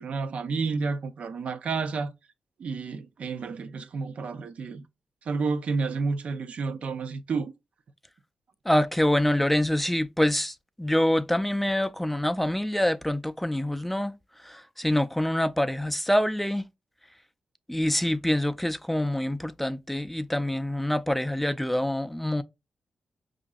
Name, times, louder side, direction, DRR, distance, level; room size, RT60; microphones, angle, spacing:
voice 1, 0.0-2.1 2.6-4.8 5.2-7.5, right 4 dB, 65° right, 0.5 m, -30 dB
voice 2, 8.7-14.1 14.4-16.6 17.7-22.4, left 1 dB, 5° left, 0.4 m, -26 dB
5.2 x 2.5 x 2.3 m
supercardioid pair, 40°, 2 cm